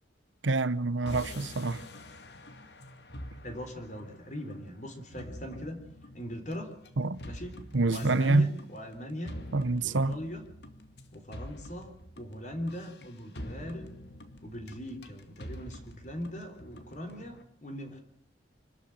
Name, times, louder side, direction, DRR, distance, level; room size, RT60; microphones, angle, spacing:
voice 1, 0.4-1.8 7.0-7.2 7.7-8.5 9.5-10.2, right 3 dB, 85° right, 1.0 m, -26 dB
sound 1, 1.1-17.4, left 1 dB, 60° left, 2.2 m, -47 dB
voice 2, 3.4-5.8 6.1-6.7 7.2-7.5 7.9-9.3 9.8-10.4 11.1-13.9 14.4-18.0, equal, 40° left, 3.8 m, -40 dB
26.0 x 13.5 x 9.0 m
head